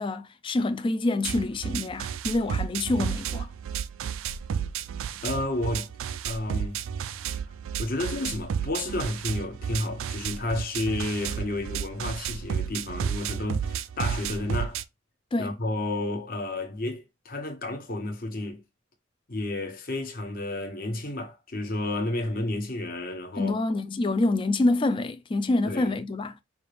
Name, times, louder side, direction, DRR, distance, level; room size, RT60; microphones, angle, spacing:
voice 1, 0.0-3.5 15.3-15.6 23.4-26.3, left 2 dB, 25° left, 0.3 m, -26 dB
sound 1, 1.2-14.8, right 7 dB, 85° right, 0.4 m, -32 dB
voice 2, 5.2-5.9 6.2-6.8 7.8-14.8 15.4-18.6 19.3-23.6 25.6-25.9, left 2 dB, 45° left, 1.1 m, -31 dB
5.2 x 2.5 x 3.3 m
head